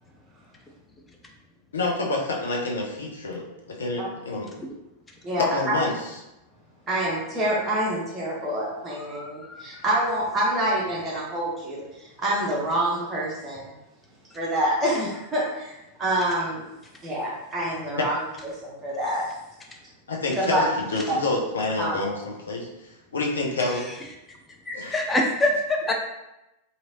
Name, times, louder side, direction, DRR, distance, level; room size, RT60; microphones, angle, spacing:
voice 1, 1.7-3.4 3.8-4.5 5.5-5.9 20.1-20.7 20.9-22.7 23.1-23.9 24.7-24.9, left 2 dB, 70° left, -1 dB, 0.5 m, -27 dB
voice 2, 5.2-5.8 6.9-13.7 14.3-16.6 17.0-18.3 18.6-19.3 20.4-20.6 21.1-21.2 21.8-22.0, right 1 dB, 15° right, -5 dB, 0.8 m, -27 dB
voice 3, 9.0-9.8 23.7-23.8 24.7-25.9, left 1 dB, 15° left, 1 dB, 0.5 m, -26 dB
3.0 x 2.6 x 2.6 m, 0.92 s
figure-of-eight pair, 90°, 0 cm